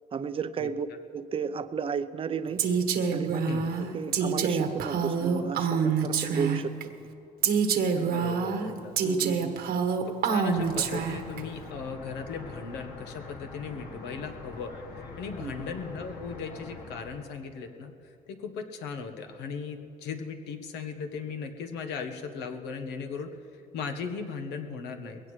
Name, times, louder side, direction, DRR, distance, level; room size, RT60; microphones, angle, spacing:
voice 1, 0.1-0.9 1.1-2.6 3.1-3.4 3.7-6.7 9.0-9.6 15.4-15.7, right 6 dB, 35° right, 13 dB, 0.6 m, -33 dB
Female speech woman speaking, 2.6-6.8 7.4-11.4, right 6 dB, 70° right, 1.3 m, -26 dB
voice 2, 7.9-8.9 10.2-14.7 15.2-23.3 23.7-25.2, left 5 dB, 85° left, 5 dB, 1.2 m, -37 dB
sound 1, 10.5-17.3, left 3 dB, 65° left, 1.5 m, -44 dB
21.0 x 17.0 x 3.2 m, 2.8 s
cardioid pair, 110°, 17 cm